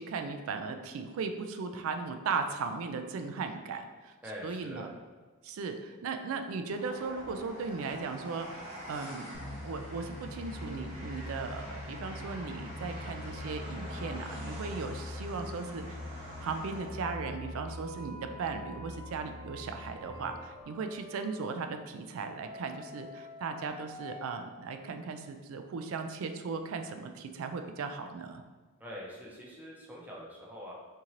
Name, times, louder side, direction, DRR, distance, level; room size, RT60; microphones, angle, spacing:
voice 1, 0.0-4.1 4.4-4.9 5.4-16.0 16.4-28.4, right 4 dB, 70° right, 7 dB, 0.3 m, -37 dB
voice 2, 4.2-4.9 28.8-30.7, equal, 10° right, -4 dB, 0.5 m, -44 dB
Train, 6.7-17.2, equal, 35° right, 1.1 m, -46 dB
sound 1, 9.3-20.6, left 1 dB, 65° left, 1.1 m, -43 dB
sound 2, 16.4-21.5 22.2-24.3, equal, 25° left, 0.8 m, -49 dB
3.7 x 2.8 x 3.0 m, 1.4 s
head